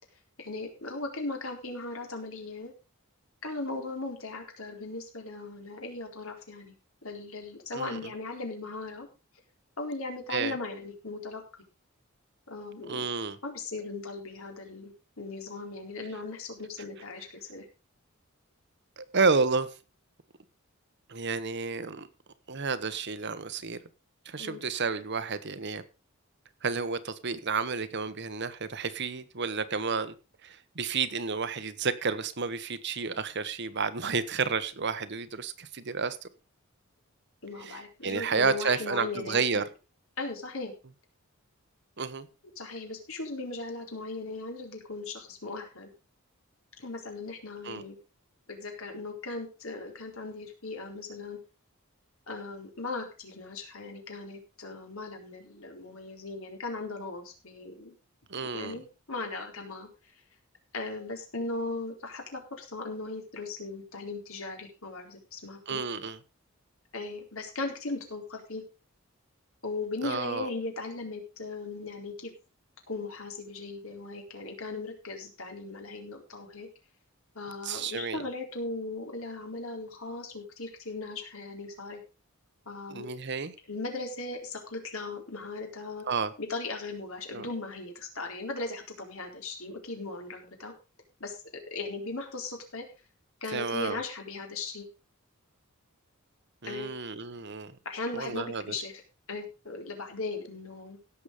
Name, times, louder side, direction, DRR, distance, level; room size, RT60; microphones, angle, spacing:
voice 1, 0.4-2.7 3.4-6.7 7.0-9.1 9.8-11.4 12.5-13.1 13.4-17.7 24.4-24.6 37.4-39.6 40.2-40.7 42.6-45.9 46.8-48.0 48.5-51.4 52.3-57.9 58.3-59.9 60.7-65.8 66.9-68.6 69.6-72.3 72.9-76.7 77.3-82.0 82.7-83.1 83.7-86.1 86.4-90.7 91.2-91.4 91.7-92.8 93.4-94.8 96.6-96.9 97.8-99.0 99.3-101.0, left 3 dB, 75° left, 4.1 m, -38 dB
voice 2, 12.8-13.4 19.0-19.7 21.1-22.1 22.5-23.8 24.2-25.8 26.6-30.1 30.4-36.3 37.6-39.6 42.0-42.3 47.6-47.8 58.3-58.8 65.7-66.2 70.0-70.5 77.6-78.2 82.9-83.5 86.0-86.3 87.3-87.5 93.5-94.0 96.6-97.8 98.1-98.7, right 4 dB, 55° right, 1.1 m, -31 dB
16.5 x 7.2 x 5.1 m
head